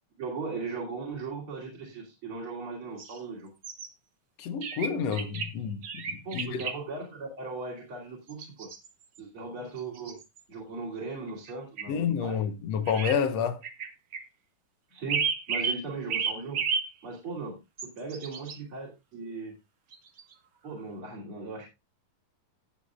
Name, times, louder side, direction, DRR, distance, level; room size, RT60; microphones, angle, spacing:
voice 1, 0.2-3.5 6.2-8.7 9.2-10.2 10.5-12.5 14.9-16.6 17.0-19.5 20.6-21.7, right 4 dB, 40° right, 3.4 m, -38 dB
sound 1, 3.0-3.2 3.6-3.9 4.6-5.5 5.8-6.8 8.3-9.2 9.8-10.4 11.3-11.5 11.8-11.9 12.9-13.2 13.6-14.2 15.1-15.8 16.1-16.9 17.8-18.6 19.9-20.3, right 6 dB, 85° right, 0.9 m, -32 dB
voice 2, 4.4-6.6 11.9-13.6, left 7 dB, 65° left, 1.7 m, -29 dB
18.0 x 7.2 x 2.4 m
omnidirectional pair, 4.1 m